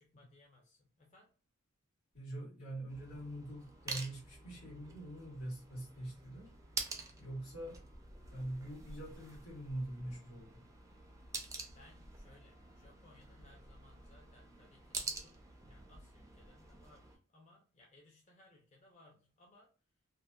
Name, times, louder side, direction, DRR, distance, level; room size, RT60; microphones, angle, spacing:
voice 1, 0.0-1.3 11.6-19.7, left 2 dB, 35° left, 0.5 m, -64 dB
voice 2, 2.1-6.5 7.2-7.8 8.3-10.7, right 1 dB, 85° left, 1.5 m, -44 dB
sound 1, 2.9-17.2, right 3 dB, 15° right, 0.3 m, -48 dB
2.6 x 2.1 x 2.2 m
head